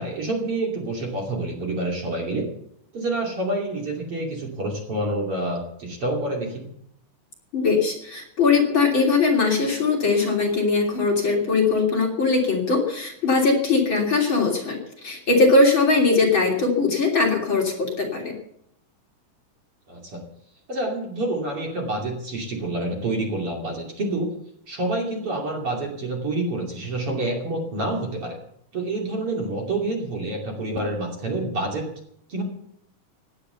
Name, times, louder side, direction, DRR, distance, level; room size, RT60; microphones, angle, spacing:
voice 1, 0.0-2.5 2.9-6.7 19.9-20.2 20.7-24.3 24.7-28.4 28.7-31.9 32.3-32.4, right 2 dB, 45° right, 1 dB, 3.4 m, -28 dB
voice 2, 7.5-18.3, left 3 dB, 35° left, 0 dB, 3.7 m, -20 dB
17.0 x 11.0 x 6.9 m, 0.72 s
omnidirectional pair, 3.9 m